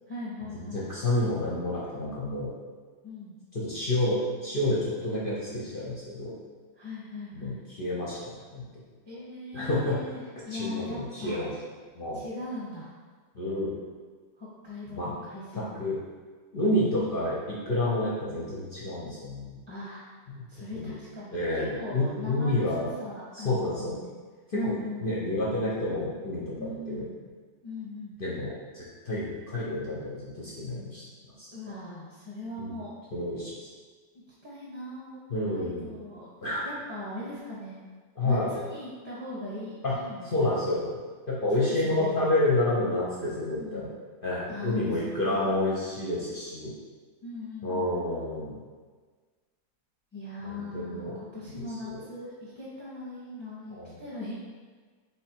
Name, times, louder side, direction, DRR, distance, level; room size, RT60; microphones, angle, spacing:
voice 1, 0.1-0.9 3.0-3.4 6.8-7.6 9.0-11.4 12.1-12.9 14.4-15.9 16.7-17.1 19.7-20.1 20.5-24.1 24.5-25.0 26.6-27.2 27.6-28.2 31.5-32.9 34.1-35.2 35.5-36.3 36.6-37.9 38.2-40.3 40.5-40.7 41.5-42.2 43.5-43.9 44.5-45.5 47.2-47.9 50.1-54.3, left 2 dB, 10° right, -7 dB, 0.9 m, -39 dB
voice 2, 0.7-2.5 3.5-6.3 7.3-8.6 9.5-10.0 10.5-11.5 11.9-12.2 13.3-13.7 14.9-15.1 15.5-16.0 16.5-19.6 20.3-20.4 20.7-20.9 21.3-22.9 23.3-23.9 24.5-24.7 25.0-27.0 28.2-31.0 31.4-31.5 32.6-32.7 33.1-33.7 35.3-35.9 36.4-36.6 38.2-38.5 39.8-39.9 40.2-40.9 41.3-43.9 44.2-46.7 47.6-48.6 50.4-51.1 51.5-51.6 51.9-52.0 53.7-53.9, left 1 dB, 50° left, -6 dB, 0.6 m, -29 dB
3.4 x 3.1 x 4.5 m, 1.5 s
omnidirectional pair, 1.8 m